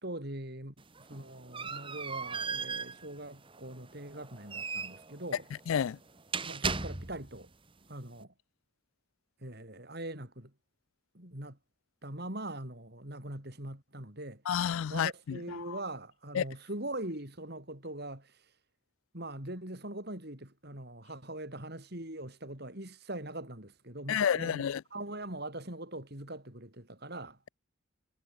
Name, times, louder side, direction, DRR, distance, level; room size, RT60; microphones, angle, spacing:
voice 1, 0.0-5.5 6.4-7.5 7.9-8.3 9.4-10.5 11.1-11.6 12.0-14.4 14.9-18.4 19.1-27.4, right 1 dB, 50° right, 5.6 m, -42 dB
sound 1, 0.8-7.4, right 5 dB, 25° right, 1.8 m, -38 dB
voice 2, 5.7-6.0 14.5-15.4 15.7-15.8 16.3-16.4 24.1-24.8, left 8 dB, 75° left, 0.4 m, -30 dB
head